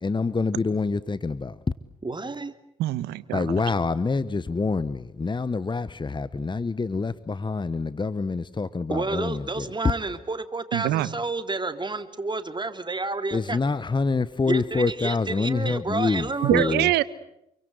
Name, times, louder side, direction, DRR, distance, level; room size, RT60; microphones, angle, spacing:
voice 1, 0.0-1.6 3.3-9.7 13.3-16.9, left 4 dB, 30° left, 1.2 m, -26 dB
voice 2, 2.0-2.5 8.9-13.6 14.5-16.8, right 3 dB, 25° right, 3.0 m, -30 dB
voice 3, 2.8-3.5 10.7-11.1 16.4-17.0, right 15 dB, 80° right, 1.2 m, -24 dB
28.0 x 23.5 x 8.0 m
hypercardioid pair, 45°, 17 cm